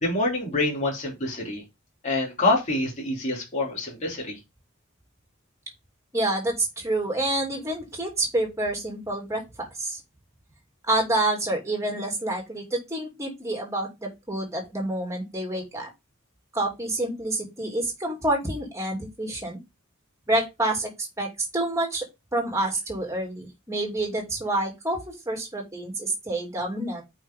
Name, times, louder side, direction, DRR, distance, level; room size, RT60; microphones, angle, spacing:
voice 1, 0.0-1.6 2.0-4.4, left 2 dB, 35° left, -3 dB, 3.0 m, -26 dB
voice 2, 6.1-10.0 10.9-15.9 16.5-19.6 20.3-20.9 21.2-27.0, right 1 dB, 15° right, 0 dB, 2.8 m, -28 dB
8.8 x 5.0 x 3.6 m, 0.22 s
head